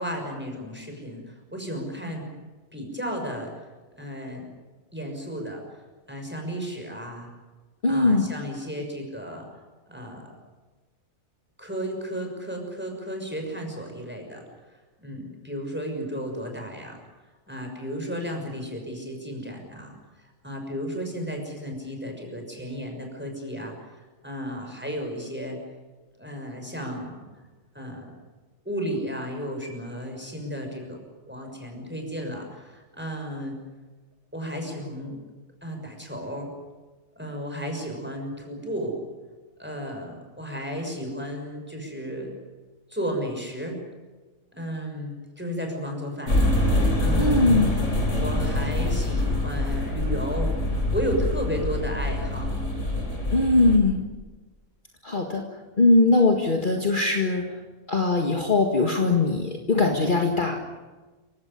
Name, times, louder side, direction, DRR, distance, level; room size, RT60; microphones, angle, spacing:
voice 1, 0.0-2.3 2.7-3.5 4.0-4.5 4.9-5.6 6.1-7.3 7.9-9.5 9.9-10.3 11.6-14.4 15.0-17.0 17.5-20.0 20.4-25.6 26.2-27.3 27.7-28.1 28.6-31.0 31.3-33.6 34.3-35.2 35.6-36.5 37.2-39.0 39.6-42.3 42.9-43.8 44.5-46.4 47.0-47.8 48.1-52.5, equal, 5° right, 2 dB, 6.2 m, -33 dB
voice 2, 7.8-8.3 47.2-47.7 53.3-54.0 55.0-55.4 55.8-57.5 57.9-60.6, left 2 dB, 35° left, 2 dB, 2.0 m, -21 dB
sound 1, 46.3-53.8, left 1 dB, 55° left, 4.4 m, -25 dB
27.5 x 16.5 x 9.9 m, 1.3 s
omnidirectional pair, 1.5 m